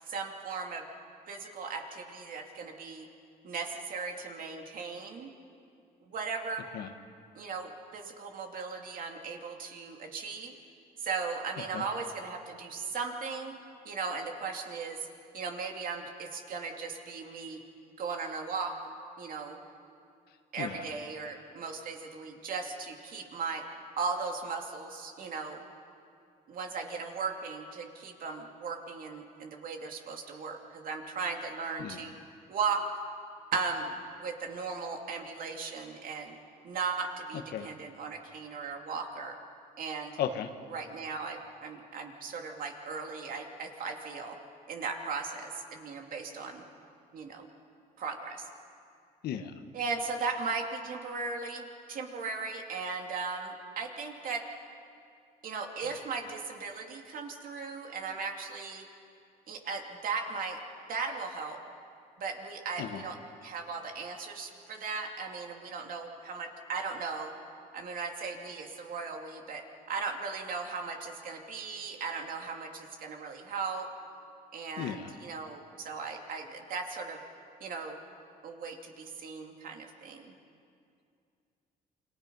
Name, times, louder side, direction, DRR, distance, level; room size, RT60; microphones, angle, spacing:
voice 1, 0.1-0.9 1.3-3.1 3.4-5.3 6.1-6.6 7.3-10.5 11.0-13.5 13.8-15.0 15.3-17.6 18.0-18.7 19.2-19.6 20.5-23.6 24.0-25.6 26.5-32.1 32.5-32.9 33.5-36.3 36.6-39.4 39.8-40.2 40.7-44.4 44.7-46.6 47.1-47.5 48.0-48.5 49.7-54.4 55.4-58.8 59.5-60.6 60.9-61.6 62.2-67.3 67.7-73.9 74.5-77.2 77.6-78.0 78.4-80.3, right 4 dB, 55° right, 2 dB, 2.6 m, -37 dB
voice 2, 6.7-6.9 11.7-11.8 20.6-20.8 31.8-32.0 37.5-37.7 40.2-40.5 49.2-49.5 62.8-63.0 74.8-75.0, left 9 dB, 70° left, 7 dB, 1.5 m, -34 dB
28.5 x 22.5 x 5.5 m, 2.5 s
cardioid pair, 110°, 17 cm